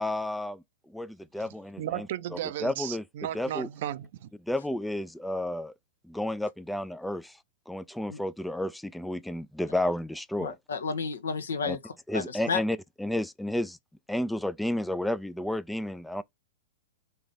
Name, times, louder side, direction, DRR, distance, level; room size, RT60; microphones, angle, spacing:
voice 1, 0.0-2.1 2.6-3.0 3.3-3.7 4.5-5.7 6.1-7.4 7.7-10.5 11.6-11.8 12.1-13.8 14.1-16.2, left 1 dB, 5° left, 0.3 m, -31 dB
voice 2, 1.8-4.3, right 12 dB, 60° right, 0.5 m, -35 dB
voice 3, 10.4-12.6, left 5 dB, 80° left, 1.0 m, -32 dB
3.7 x 3.3 x 4.0 m
hypercardioid pair, 110°, 0 cm